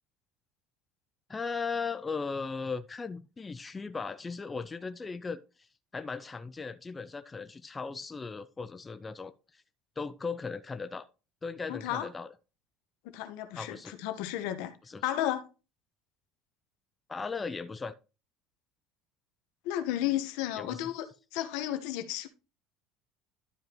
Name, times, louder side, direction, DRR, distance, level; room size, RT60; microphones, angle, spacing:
voice 1, 1.3-5.4 5.9-9.6 10.0-11.1 11.4-12.3 13.6-13.9 14.9-15.0 17.1-17.9 20.6-20.8, left 4 dB, 15° left, 0.5 m, -37 dB
voice 2, 11.7-12.1 13.0-14.8 15.0-15.5 19.6-21.1 21.3-22.3, left 12 dB, 80° left, 1.2 m, -33 dB
12.0 x 5.1 x 3.0 m
cardioid pair, 145°, 0 cm